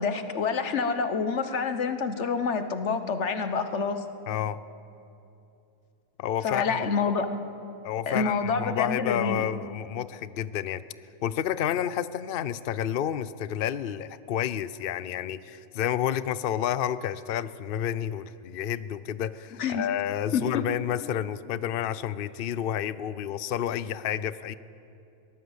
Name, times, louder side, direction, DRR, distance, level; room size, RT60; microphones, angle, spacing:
voice 1, 0.0-4.0 6.4-7.3 8.1-9.4 19.6-19.9 20.3-20.6, left 5 dB, 50° left, 9 dB, 1.4 m, -27 dB
voice 2, 4.3-4.6 6.2-6.9 7.8-10.8 11.2-24.5, left 10 dB, 80° left, 15 dB, 0.5 m, -30 dB
22.5 x 18.5 x 8.1 m, 2.7 s
omnidirectional pair, 1.7 m